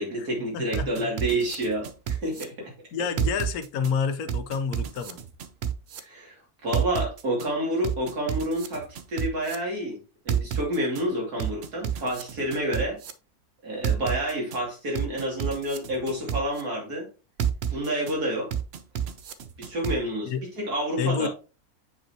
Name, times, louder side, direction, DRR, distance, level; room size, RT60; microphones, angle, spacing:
voice 1, 0.0-2.7 6.0-10.0 10.2-13.0 13.6-17.1 17.7-18.5 19.6-21.3, right 1 dB, 75° right, 3.2 m, -29 dB
voice 2, 0.5-1.1 2.9-5.2 20.2-20.4 21.0-21.3, left 6 dB, 75° left, 1.2 m, -28 dB
sound 1, 0.7-2.4 3.2-3.9 4.3-6.0 6.7-7.5 7.8-9.6 10.3-11.0 11.4-13.1 13.8-14.6 15.0-16.6 17.4-18.1 18.5-20.0, right 9 dB, 60° right, 0.7 m, -29 dB
7.7 x 5.3 x 2.9 m
omnidirectional pair, 1.6 m